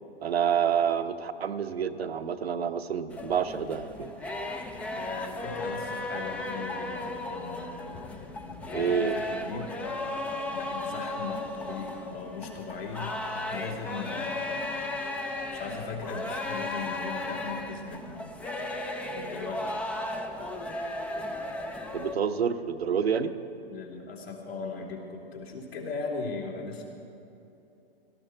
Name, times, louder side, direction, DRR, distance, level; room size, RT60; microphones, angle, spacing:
voice 1, 0.2-4.1 8.7-9.1 21.9-23.3, right 7 dB, 80° right, 8 dB, 0.9 m, -28 dB
sound 1, 3.1-22.2, left 2 dB, 5° left, 0.3 m, -35 dB
voice 2, 5.0-9.7 10.5-14.6 14.9-15.0 15.5-18.3 19.1-19.8 23.7-26.8, left 4 dB, 75° left, -1 dB, 3.1 m, -38 dB
18.0 x 13.0 x 4.5 m, 2.9 s
hypercardioid pair, 120°, 31 cm